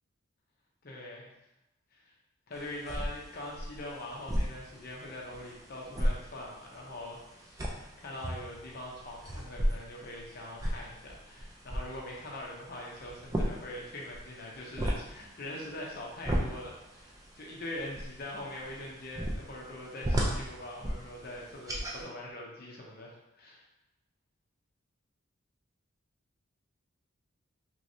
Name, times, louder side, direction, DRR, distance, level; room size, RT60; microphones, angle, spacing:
voice 1, 0.8-1.3 1.9-2.1 2.5-23.6, left 1 dB, 45° left, -2 dB, 0.6 m, -43 dB
sound 1, 2.5-22.0, equal, 15° right, 0.3 m, -36 dB
3.1 x 3.1 x 2.6 m, 0.89 s
head